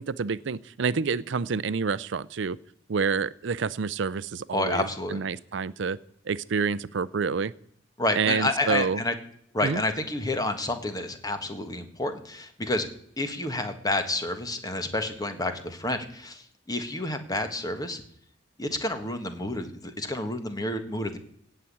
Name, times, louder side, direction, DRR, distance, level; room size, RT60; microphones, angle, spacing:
voice 1, 0.0-2.6 2.9-6.0 6.3-7.5 8.2-9.0 9.6-9.8, right 5 dB, 70° right, 18 dB, 0.5 m, -28 dB
voice 2, 4.5-5.2 8.0-9.1 9.5-12.9 13.2-18.0 18.6-21.2, left 2 dB, 20° left, 8 dB, 1.5 m, -29 dB
17.0 x 5.9 x 8.5 m, 0.68 s
head